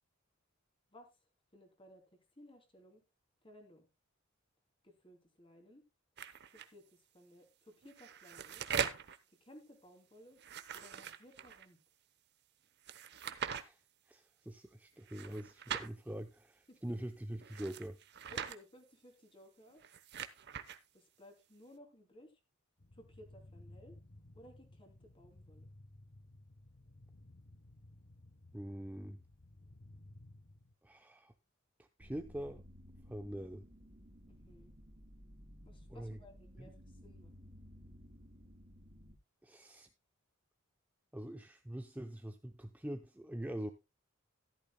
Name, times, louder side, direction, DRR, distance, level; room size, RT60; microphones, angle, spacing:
voice 1, 1.5-3.0 3.4-3.9 4.8-5.8 6.5-8.6 9.4-10.4 10.7-11.8 16.7-16.9 18.3-19.8 20.9-22.3 22.9-24.0 24.3-25.7 34.3-34.7 35.6-37.3, left 1 dB, 25° left, 4 dB, 3.0 m, -59 dB
sound 1, 6.2-6.7 7.8-9.2 10.3-11.6 12.8-13.6 15.0-15.9 17.4-18.6 19.7-20.8, right 7 dB, 55° right, 0.9 m, -41 dB
voice 2, 14.1-18.0 28.5-29.2 30.8-31.3 31.8-32.6 33.1-33.6 35.9-36.2 36.6-36.7 39.4-39.9 41.1-43.7, right 1 dB, 10° right, 6 dB, 0.6 m, -44 dB
sound 2, 22.8-30.7, left 1 dB, 45° left, 0.9 m, -58 dB
sound 3, 32.0-39.2, equal, 35° right, 3.0 m, -56 dB
14.0 x 12.0 x 2.2 m, 0.25 s
head